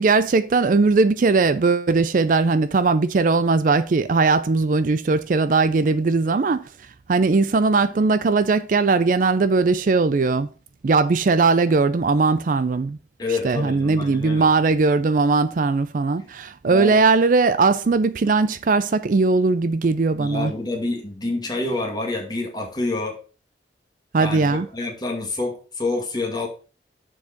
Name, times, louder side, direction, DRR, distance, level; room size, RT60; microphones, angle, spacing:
voice 1, 0.0-6.6 7.1-10.5 10.8-13.0 13.3-20.5 24.1-24.7, right 4 dB, 50° right, 0.4 m, -19 dB
voice 2, 13.2-14.5 16.1-16.2 16.6-17.0 20.2-23.1 24.2-26.5, left 2 dB, 25° left, 2.1 m, -27 dB
7.0 x 4.7 x 5.9 m
head